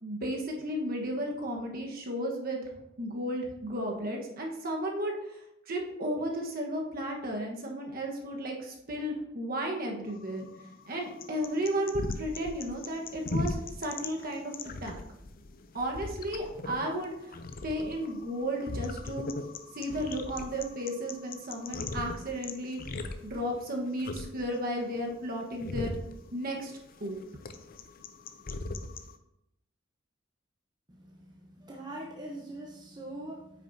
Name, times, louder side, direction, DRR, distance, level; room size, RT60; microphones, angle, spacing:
voice 1, 0.0-2.6 3.0-5.2 5.7-10.4 10.9-14.5 14.8-15.0 15.7-17.3 17.6-19.3 19.7-25.9 26.3-26.7 27.0-27.2, equal, 50° right, 0 dB, 1.3 m, -34 dB
Alien Crickets, 10.1-29.2, left 3 dB, 45° left, 0.6 m, -39 dB
voice 2, 30.9-33.6, right 1 dB, 20° right, -2 dB, 0.9 m, -43 dB
9.0 x 6.3 x 2.7 m, 0.83 s
head